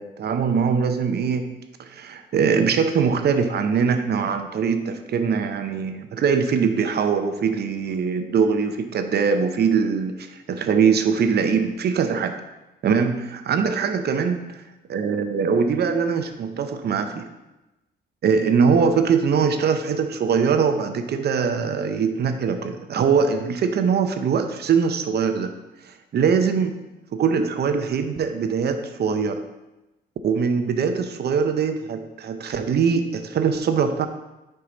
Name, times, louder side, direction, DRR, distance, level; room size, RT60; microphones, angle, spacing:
voice 1, 0.0-1.5 1.8-12.4 12.8-14.4 14.9-17.3 18.2-25.5 25.9-26.8 27.1-29.4 30.2-34.1, right 6 dB, 55° right, 8 dB, 0.7 m, -22 dB
6.3 x 4.7 x 3.9 m, 1.0 s
cardioid pair, 90°, 20 cm